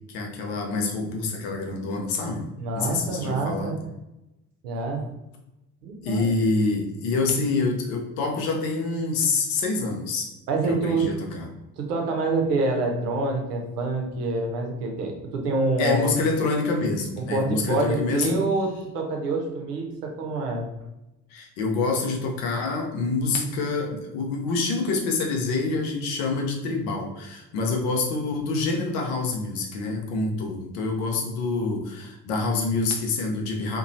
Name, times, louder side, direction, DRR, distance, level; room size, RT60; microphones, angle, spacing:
voice 1, 0.1-2.5 2.8-3.7 6.0-10.3 10.7-11.5 15.8-18.4 21.3-33.8, left 3 dB, 60° left, 1 dB, 0.8 m, -26 dB
voice 2, 2.6-3.8 4.6-5.1 5.8-6.3 10.5-11.1 11.8-16.1 17.2-18.7 18.9-20.7, right 3 dB, 75° right, 2 dB, 0.7 m, -26 dB
2.9 x 2.2 x 2.7 m, 0.94 s
figure-of-eight pair, 55°, 48 cm